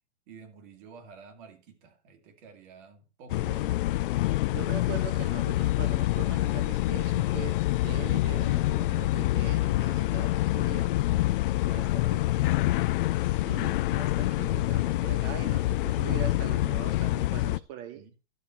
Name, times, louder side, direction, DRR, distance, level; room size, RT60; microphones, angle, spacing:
voice 1, 0.3-4.4 10.0-10.4 10.9-11.2 11.7-12.6 17.9-18.2, right 5 dB, 45° right, 2.3 m, -51 dB
sound 1, 3.3-17.6, left 16 dB, 50° left, 0.4 m, -26 dB
voice 2, 3.4-3.7 4.5-10.9 11.7-12.3 13.3-18.1, right 10 dB, 25° right, 0.4 m, -42 dB
12.0 x 6.6 x 4.4 m
hypercardioid pair, 145°, 35 cm